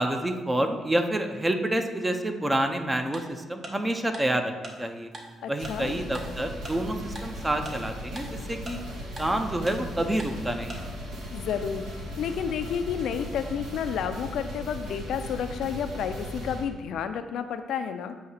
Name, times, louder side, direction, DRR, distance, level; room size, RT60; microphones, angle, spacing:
voice 1, 0.0-5.1 5.5-8.8 9.2-10.8, right 1 dB, 15° right, 6 dB, 0.6 m, -28 dB
Tick-tock, 3.1-3.2 3.6-3.7 4.1-4.2 4.6-4.7 5.1-5.2 5.6-5.7 6.1-6.2 6.6-6.7 7.1-7.2 7.6-7.7 8.2-8.3 8.7-8.8 9.2-9.3 9.7-9.8 10.2-10.3 10.7-10.8, right 2 dB, 40° right, 1.1 m, -39 dB
voice 2, 5.4-5.9 11.3-11.8 12.2-18.1, left 8 dB, 75° left, 9 dB, 0.4 m, -31 dB
sound 1, 5.6-16.6, equal, 75° right, 1.5 m, -37 dB
7.6 x 2.8 x 5.6 m, 1.3 s
cardioid pair, 90°, 0 cm